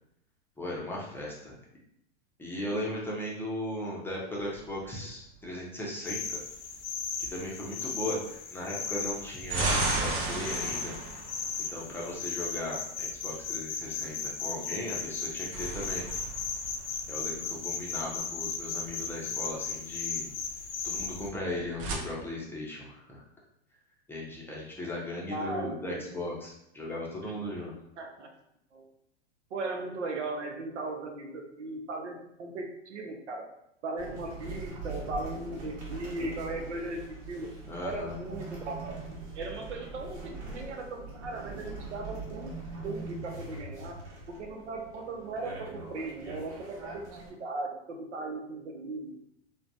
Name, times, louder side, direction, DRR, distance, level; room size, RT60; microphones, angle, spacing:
voice 1, 0.6-1.6 2.4-6.4 7.3-10.9 11.7-16.1 17.1-20.3 20.8-23.2 24.1-27.7 37.7-38.1, left 1 dB, 5° left, -4 dB, 0.6 m, -37 dB
sound 1, 4.4-5.4 9.0-12.3 15.1-17.6 21.4-22.0, right 3 dB, 40° right, 0.6 m, -34 dB
sound 2, 6.0-21.3, left 5 dB, 85° left, 0.6 m, -36 dB
voice 2, 25.3-26.0 27.2-27.3 27.6-27.7 28.0-28.3 28.7-28.9 29.5-33.4 33.8-37.5 37.8-39.0 39.3-42.5 42.8-44.0 44.4-46.9 47.4-49.2, right 2 dB, 90° right, 2 dB, 0.7 m, -37 dB
sound 3, 34.0-47.3, right 3 dB, 70° right, 1.1 m, -42 dB
3.1 x 2.2 x 2.5 m, 0.79 s
hypercardioid pair, 110°, 34 cm